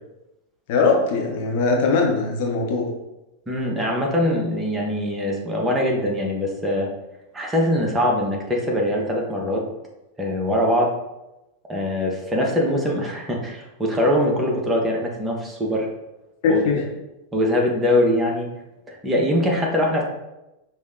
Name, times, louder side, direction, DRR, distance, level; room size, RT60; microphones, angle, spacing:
voice 1, 0.7-2.8 16.4-16.8, left 4 dB, 50° left, 0 dB, 0.7 m, -20 dB
voice 2, 3.5-6.9 7.3-9.6 10.2-10.9 11.7-15.9 16.5-16.6 17.3-18.5 18.9-20.0, left 1 dB, 10° right, -1 dB, 0.9 m, -22 dB
5.1 x 2.1 x 3.7 m, 0.96 s
figure-of-eight pair, 90°, 0 cm